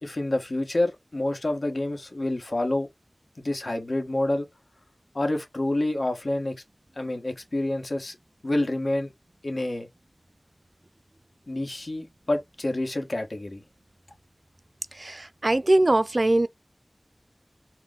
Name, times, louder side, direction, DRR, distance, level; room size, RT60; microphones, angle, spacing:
voice 1, 0.0-2.9 3.4-4.5 5.1-6.6 7.0-8.2 8.4-9.1 9.4-9.9 11.5-13.6, left 1 dB, 70° left, 1.2 m, -28 dB
voice 2, 14.9-16.5, right 1 dB, 50° right, 0.4 m, -22 dB
4.4 x 2.1 x 3.7 m
wide cardioid pair, 55°, 0 cm